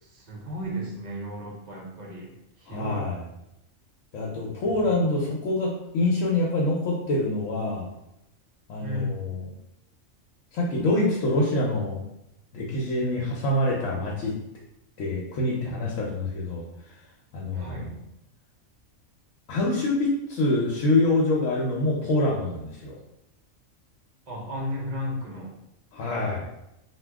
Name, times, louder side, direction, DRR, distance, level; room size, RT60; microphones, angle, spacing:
voice 1, 0.0-3.1 8.8-9.2 17.5-17.9 24.3-25.5, left 1 dB, 45° right, -2 dB, 0.6 m, -34 dB
voice 2, 2.7-3.2 4.1-7.9 8.7-9.4 10.5-12.0 12.5-14.3 15.0-16.6 17.3-18.0 19.5-23.0 25.9-26.5, left 2 dB, 75° left, -3 dB, 1.0 m, -25 dB
2.8 x 2.2 x 3.4 m, 0.86 s
omnidirectional pair, 1.4 m